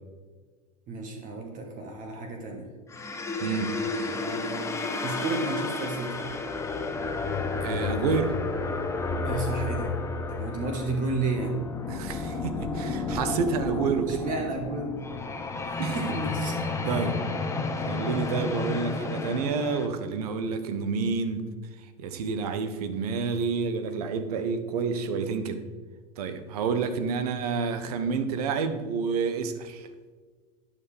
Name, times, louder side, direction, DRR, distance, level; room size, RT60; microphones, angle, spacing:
voice 1, 0.9-2.7 4.1-4.7 5.0-6.2 9.2-10.0 10.3-11.6 14.1-15.0 15.6-16.6 16.8-17.1 17.5-18.0, right 3 dB, 40° right, 1.2 m, -32 dB
sound 1, 2.9-19.9, left 3 dB, 15° left, 0.7 m, -31 dB
voice 2, 3.4-3.8 7.6-8.4 11.9-14.2 15.8-16.0 16.8-17.2 17.9-21.5 22.0-25.7 26.2-29.9, right 5 dB, 75° right, 0.8 m, -29 dB
9.5 x 4.9 x 3.3 m
hypercardioid pair, 100°, 20 cm